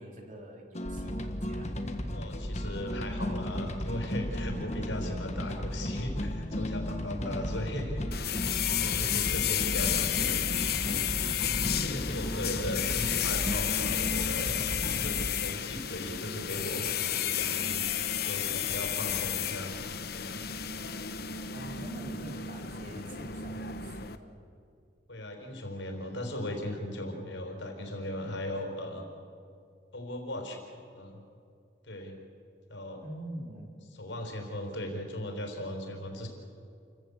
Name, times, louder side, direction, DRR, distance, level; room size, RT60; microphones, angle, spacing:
voice 1, 0.0-2.1 11.5-12.5 21.5-24.4 33.0-33.7, right 1 dB, 40° right, 1 dB, 3.3 m, -44 dB
sound 1, 0.7-15.3, equal, 35° left, 1.5 m, -35 dB
voice 2, 2.1-8.0 8.8-10.4 11.8-14.6 14.9-19.7 20.1-20.4 25.1-29.1 29.9-31.2 31.9-32.1 32.7-33.0 34.0-36.3, left 1 dB, 75° left, 3 dB, 4.6 m, -38 dB
sound 2, 8.1-24.2, left 9 dB, 55° left, 1.0 m, -32 dB
28.5 x 15.0 x 8.4 m, 2.4 s
head